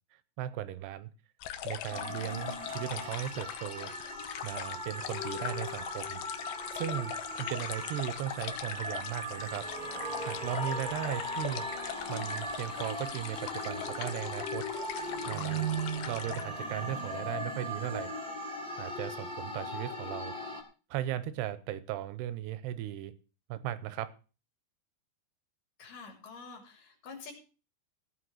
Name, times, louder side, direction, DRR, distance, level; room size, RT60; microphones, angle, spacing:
voice 1, 0.4-1.1 1.6-3.9 4.4-6.2 6.7-7.1 7.4-9.7 10.2-11.7 12.1-14.7 15.2-15.7 16.1-18.1 18.8-20.3 20.9-23.1 23.5-24.2, right 12 dB, 80° right, 15 dB, 2.8 m, -37 dB
sound 1, 1.4-16.4, left 11 dB, 80° left, 3.0 m, -41 dB
sound 2, 1.9-20.6, equal, ahead, 1.9 m, -38 dB
voice 2, 25.8-27.3, left 4 dB, 50° left, 2 dB, 4.3 m, -47 dB
16.0 x 5.7 x 7.8 m, 0.36 s
omnidirectional pair, 5.1 m